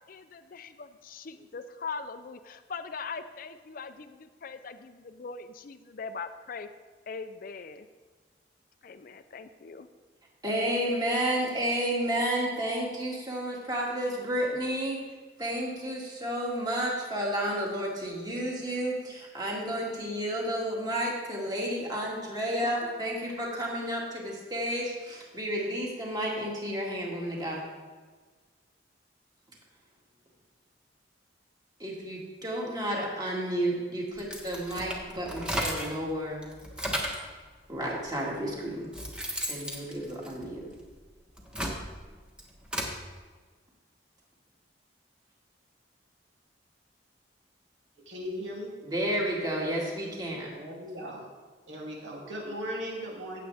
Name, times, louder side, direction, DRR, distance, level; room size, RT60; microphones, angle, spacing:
voice 1, 0.1-6.7 7.1-7.9 8.8-9.9, left 5 dB, 50° left, 9 dB, 0.4 m, -41 dB
voice 2, 10.4-27.6 29.5-29.6 31.8-36.4 37.7-38.9 39.5-40.7 48.8-50.6, right 1 dB, 20° right, -3 dB, 2.2 m, -31 dB
sound 1, 34.2-36.0 36.4-37.3 38.1-38.2 38.7-40.8 41.3-43.0, equal, 5° right, 1.2 m, -34 dB
voice 3, 48.1-48.7 50.5-51.2 51.7-53.4, equal, 75° right, -2 dB, 2.7 m, -37 dB
15.5 x 7.5 x 3.4 m, 1.4 s
head